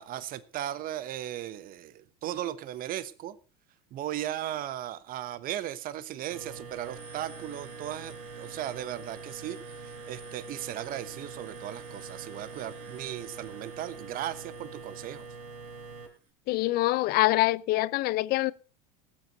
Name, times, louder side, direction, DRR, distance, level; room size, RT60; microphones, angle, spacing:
voice 1, 0.0-3.4 3.9-9.6 9.8-15.3, right 12 dB, 45° right, 1.2 m, -37 dB
sound 1, 6.3-16.1, right 4 dB, 80° right, 4.3 m, -44 dB
voice 2, 16.5-18.5, left 18 dB, 50° left, 0.7 m, -25 dB
17.5 x 8.2 x 5.4 m
supercardioid pair, 100°, 20 cm